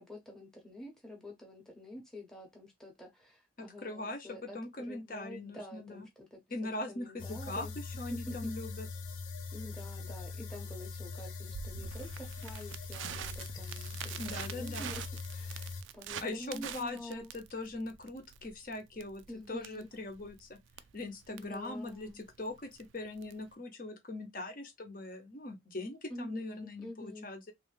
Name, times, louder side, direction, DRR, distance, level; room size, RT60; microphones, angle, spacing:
voice 1, 0.0-7.7 8.1-8.5 9.5-15.0 15.3-17.3 19.3-19.9 21.3-22.2 26.1-27.3, left 1 dB, 5° left, 0.9 m, -47 dB
voice 2, 3.6-6.1 6.5-8.9 14.2-14.9 16.2-19.2 19.5-20.6 20.9-27.5, left 2 dB, 45° left, 0.9 m, -41 dB
sound 1, 7.2-15.8, left 4 dB, 85° left, 0.6 m, -42 dB
Crackle, 11.5-23.5, right 9 dB, 85° right, 0.4 m, -46 dB
3.2 x 2.7 x 3.2 m
head